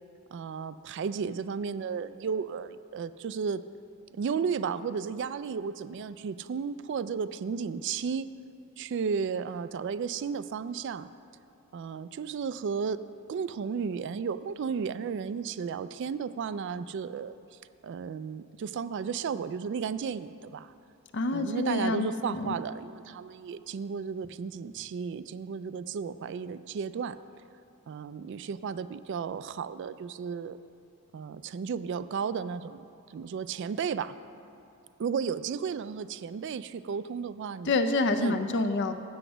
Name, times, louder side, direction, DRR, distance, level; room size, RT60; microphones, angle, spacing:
voice 1, 0.3-3.6 4.1-8.3 8.8-11.1 11.7-13.0 13.3-17.3 17.8-20.7 21.3-27.2 27.9-30.6 31.1-34.1 35.0-37.7 38.2-38.4, right 6 dB, 55° right, 14 dB, 0.3 m, -34 dB
voice 2, 21.1-22.6 37.7-38.9, left 2 dB, 55° left, 8 dB, 0.5 m, -27 dB
7.9 x 7.9 x 6.1 m, 2.7 s
head